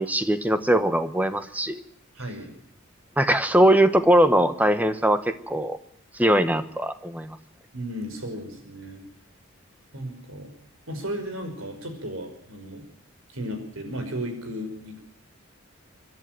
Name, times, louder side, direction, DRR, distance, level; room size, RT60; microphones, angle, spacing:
voice 1, 0.0-1.8 3.2-5.8 6.1-7.4, right 1 dB, 10° right, 11 dB, 1.1 m, -21 dB
voice 2, 2.1-2.5 7.7-9.1 9.9-10.5 10.9-12.9 13.3-15.0, equal, 85° right, 6 dB, 5.5 m, -34 dB
26.0 x 11.5 x 9.2 m, 0.68 s
head